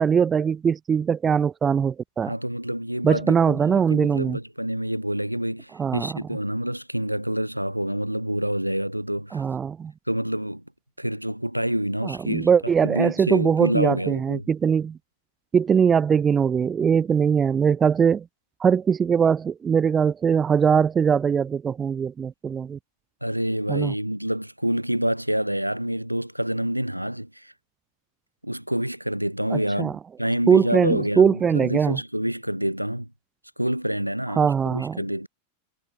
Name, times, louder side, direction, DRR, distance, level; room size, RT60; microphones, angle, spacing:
voice 1, 0.0-2.3 3.0-4.4 5.8-6.1 9.3-9.9 12.0-15.0 15.5-18.2 18.6-22.8 23.7-23.9 29.5-29.9 30.5-32.0 34.4-35.0, right 7 dB, 20° right, 4.8 m, -21 dB
voice 2, 2.2-9.5 10.1-10.6 11.0-14.5 23.2-27.5 28.4-33.1 33.6-35.3, equal, 90° right, 6.3 m, -27 dB
figure-of-eight pair, 90°, 0 cm